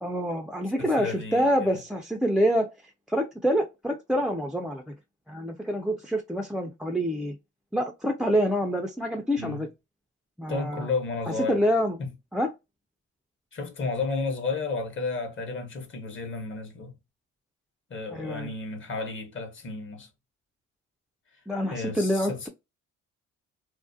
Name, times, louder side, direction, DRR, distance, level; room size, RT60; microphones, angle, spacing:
voice 1, 0.0-2.7 3.1-5.0 5.3-7.4 7.7-9.7 10.4-10.9 11.3-12.0 12.3-12.5 18.1-18.5 21.5-22.5, equal, ahead, 0.3 m, -26 dB
voice 2, 0.8-1.8 9.4-9.6 10.5-11.6 13.5-16.9 17.9-20.1 21.7-22.5, left 3 dB, 40° left, 0.9 m, -32 dB
2.3 x 2.0 x 2.5 m
cardioid pair, 90°, 30 cm